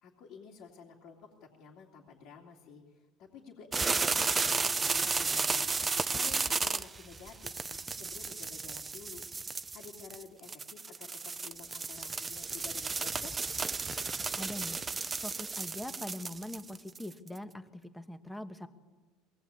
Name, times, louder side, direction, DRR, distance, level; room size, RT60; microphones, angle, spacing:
voice 1, 0.0-9.2 9.5-13.3, left 6 dB, 55° left, -3 dB, 3.0 m, -51 dB
sound 1, 3.7-17.4, right 4 dB, 20° right, 0.7 m, -33 dB
voice 2, 14.4-14.8 15.2-18.7, left 1 dB, 5° left, 8 dB, 1.4 m, -42 dB
22.5 x 18.5 x 8.6 m, 1.3 s
supercardioid pair, 130°, 0 cm